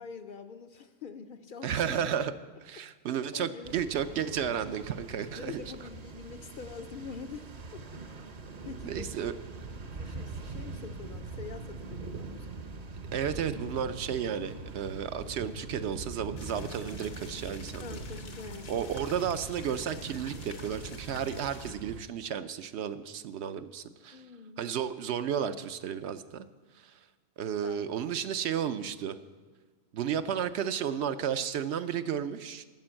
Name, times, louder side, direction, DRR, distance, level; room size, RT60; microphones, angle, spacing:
voice 1, 0.0-2.0 3.3-3.8 5.3-7.8 8.6-9.1 10.0-12.6 17.8-18.9 24.1-24.8 27.6-27.8, left 5 dB, 55° left, 8 dB, 0.6 m, -45 dB
voice 2, 1.6-2.3 2.6-5.6 8.8-9.3 13.1-17.8 18.7-24.2 24.6-26.5 26.8-26.9 27.4-29.2 29.9-32.6, right 8 dB, 75° right, 11 dB, 0.9 m, -33 dB
sound 1, 3.6-22.0, right 3 dB, 40° right, 0.7 m, -42 dB
sound 2, 16.4-21.7, left 4 dB, 80° left, 1.4 m, -49 dB
13.0 x 5.2 x 8.8 m, 1.4 s
omnidirectional pair, 1.2 m